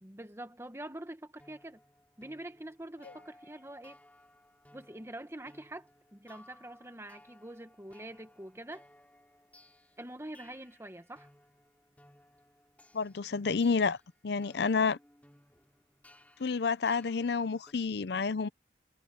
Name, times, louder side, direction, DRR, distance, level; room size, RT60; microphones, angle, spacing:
voice 1, 0.0-1.8 2.2-4.0 4.7-8.8 10.0-11.3, right 1 dB, 15° right, 1.4 m, -45 dB
sound 1, 1.4-17.7, left 1 dB, 10° left, 5.4 m, -61 dB
voice 2, 12.9-14.0 14.2-15.0 16.4-18.5, left 5 dB, 70° left, 0.6 m, -29 dB
head